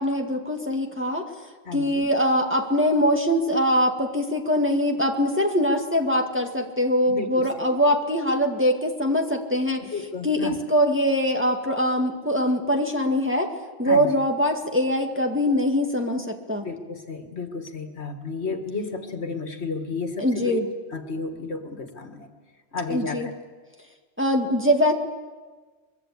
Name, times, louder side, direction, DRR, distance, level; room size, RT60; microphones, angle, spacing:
voice 1, 0.0-1.3 1.7-9.9 10.2-13.5 13.8-16.7 20.2-20.7 22.9-23.3 24.2-24.9, equal, 10° right, 2 dB, 2.0 m, -23 dB
voice 2, 1.7-2.1 7.1-7.3 9.9-10.6 13.8-14.1 16.6-20.6 20.9-22.3 22.7-23.3, left 4 dB, 65° left, 6 dB, 2.2 m, -32 dB
24.0 x 22.5 x 8.6 m, 1.4 s
omnidirectional pair, 1.2 m